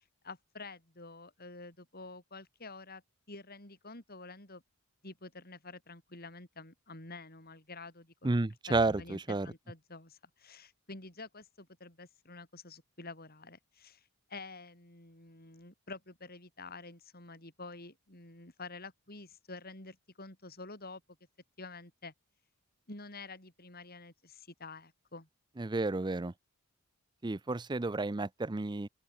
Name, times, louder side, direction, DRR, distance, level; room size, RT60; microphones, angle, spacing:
voice 1, 0.0-3.0 3.3-4.6 5.0-8.4 8.7-21.0 21.6-22.1 22.9-25.3, left 3 dB, 45° left, 6.8 m, -49 dB
voice 2, 8.2-9.5 25.6-26.3 27.2-28.9, right 2 dB, 20° right, 0.5 m, -31 dB
open air
head